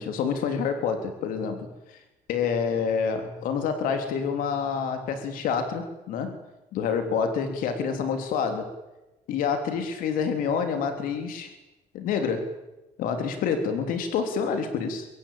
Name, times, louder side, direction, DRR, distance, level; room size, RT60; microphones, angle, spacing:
voice 1, 0.0-2.0 2.3-6.4 6.7-8.7 9.3-11.5 11.9-12.5 13.0-15.1, left 6 dB, 80° left, 6 dB, 3.4 m, -27 dB
25.5 x 22.5 x 8.7 m, 1.0 s
cardioid pair, 125°, 14 cm